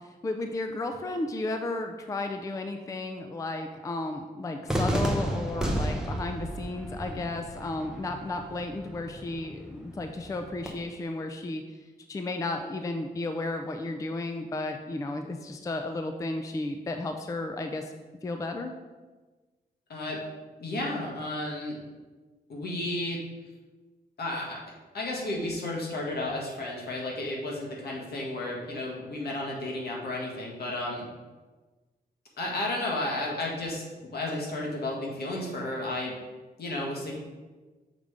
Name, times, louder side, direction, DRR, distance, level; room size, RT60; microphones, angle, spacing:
voice 1, 0.0-11.8 12.1-17.9 18.2-18.7, left 2 dB, 20° left, 6 dB, 0.4 m, -33 dB
Cheering / Fireworks, 4.7-10.7, equal, 5° right, 0.8 m, -33 dB
voice 2, 19.9-20.2 20.6-21.8 22.5-23.2 24.2-24.6 24.9-31.1 32.4-36.1 36.6-37.2, left 1 dB, 75° left, -2 dB, 1.5 m, -32 dB
6.5 x 3.5 x 5.0 m, 1.3 s
wide cardioid pair, 145°, 17 cm